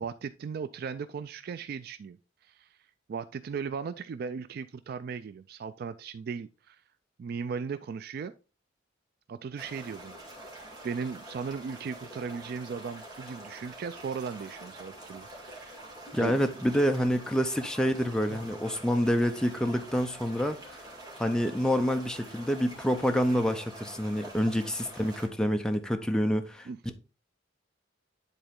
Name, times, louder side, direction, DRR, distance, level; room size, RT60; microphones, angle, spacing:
voice 1, 0.0-2.2 2.4-2.7 3.1-6.8 7.2-8.3 9.3-10.6 10.8-15.8 16.2-16.4 18.3-18.4 26.7-26.9, right 5 dB, 50° right, 0.3 m, -37 dB
sound 1, 9.6-25.3, right 1 dB, 20° right, 2.1 m, -46 dB
voice 2, 16.1-20.6 21.2-26.7, equal, 5° left, 0.6 m, -27 dB
10.0 x 3.9 x 3.6 m
head